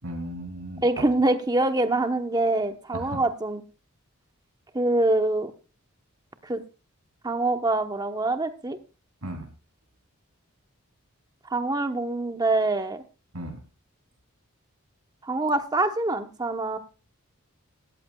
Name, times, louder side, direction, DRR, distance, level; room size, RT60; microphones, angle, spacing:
voice 1, 0.0-1.0 2.9-3.2 9.2-9.5 13.3-13.6, right 1 dB, 80° right, 6 dB, 2.9 m, -35 dB
voice 2, 0.8-3.6 4.7-5.5 6.4-6.6 7.2-8.8 11.4-13.0 15.2-16.8, right 2 dB, 20° right, 7 dB, 1.0 m, -25 dB
18.0 x 14.0 x 2.3 m, 0.32 s
head